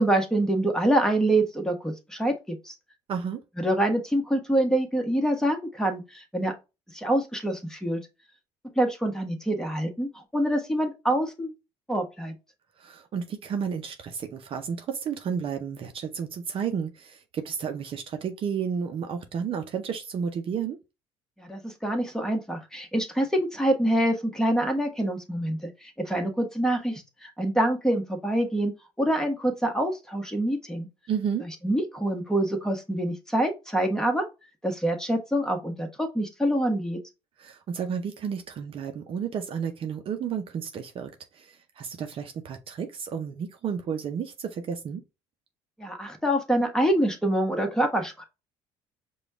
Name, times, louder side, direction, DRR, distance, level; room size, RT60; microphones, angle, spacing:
voice 1, 0.0-2.7 3.6-6.5 6.9-8.0 8.7-11.5 11.9-12.3 21.4-30.9 31.4-34.2 34.6-37.0 45.8-48.2, right 1 dB, 5° left, 1.3 m, -26 dB
voice 2, 3.1-3.4 12.8-20.8 31.1-31.5 37.4-45.0, right 7 dB, 50° right, 0.7 m, -32 dB
5.0 x 2.4 x 3.4 m
supercardioid pair, 75°, 12 cm